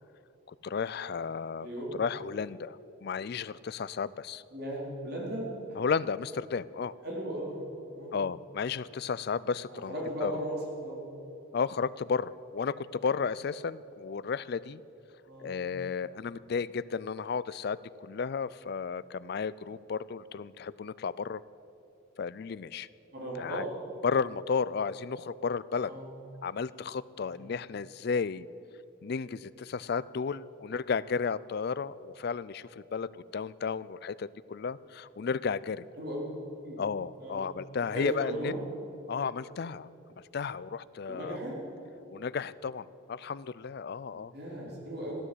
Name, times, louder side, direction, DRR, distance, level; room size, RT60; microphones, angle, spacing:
voice 1, 0.5-1.7 2.0-4.4 5.8-6.9 8.1-9.9 10.2-10.4 11.5-14.8 15.4-21.4 22.2-22.9 23.4-23.7 24.0-25.9 26.4-28.5 29.0-35.9 36.8-38.5 39.1-39.9 40.3-41.4 42.1-44.3, left 5 dB, 50° left, 18 dB, 0.3 m, -33 dB
voice 2, 4.5-5.4 7.0-7.6 7.9-8.1 9.7-11.0 15.3-15.6 23.1-23.6 25.8-26.0 27.2-27.5 36.0-36.8 37.2-37.5 37.9-38.6 41.1-41.5 44.1-45.2, right 1 dB, 50° right, -4 dB, 3.9 m, -37 dB
14.0 x 13.0 x 7.8 m, 3.0 s
head